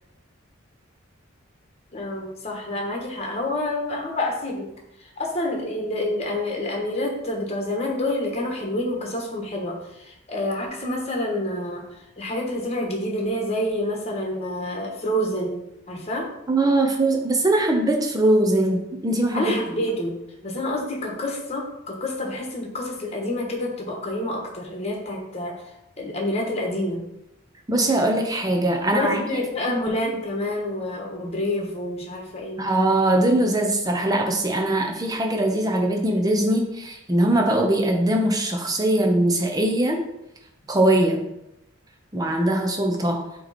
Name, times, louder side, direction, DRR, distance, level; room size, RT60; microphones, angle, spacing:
voice 1, 1.9-4.7 5.0-11.8 12.2-15.6 15.9-16.3 19.3-20.1 20.4-25.5 26.0-27.0 28.9-32.6, left 1 dB, 30° left, 0 dB, 1.2 m, -28 dB
voice 2, 16.5-19.5 27.7-29.2 29.9-30.0 32.6-40.0 40.7-41.2 42.1-43.2, right 1 dB, 20° right, 2 dB, 0.7 m, -21 dB
8.0 x 3.1 x 4.1 m, 0.84 s
head